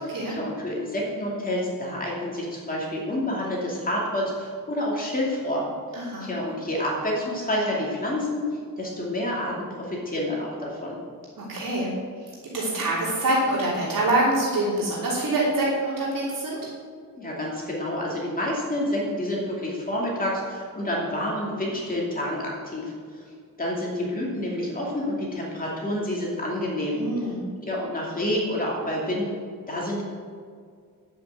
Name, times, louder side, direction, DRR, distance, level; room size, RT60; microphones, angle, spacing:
voice 1, 0.3-5.6 6.2-11.0 17.1-23.3 23.6-27.0 27.6-29.4 29.7-30.0, left 1 dB, 25° left, -4 dB, 2.6 m, -28 dB
voice 2, 5.9-6.3 11.4-11.9 12.2-16.7 26.9-27.5, right 1 dB, 70° right, -5 dB, 3.2 m, -25 dB
10.0 x 8.6 x 8.4 m, 2.1 s
wide cardioid pair, 165°, 34 cm